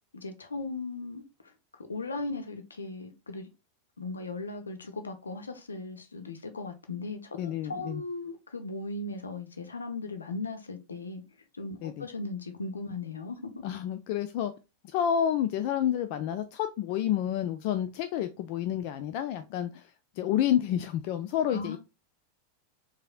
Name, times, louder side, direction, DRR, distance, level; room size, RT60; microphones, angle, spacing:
voice 1, 0.1-3.5 4.0-11.2 11.5-13.6 21.5-21.8, left 3 dB, 75° left, 0.7 m, -38 dB
voice 2, 7.4-8.0 11.8-12.0 13.6-14.5 14.8-19.9 20.2-21.8, left 10 dB, 45° left, 0.3 m, -29 dB
4.7 x 2.7 x 2.4 m
figure-of-eight pair, 90°, 0 cm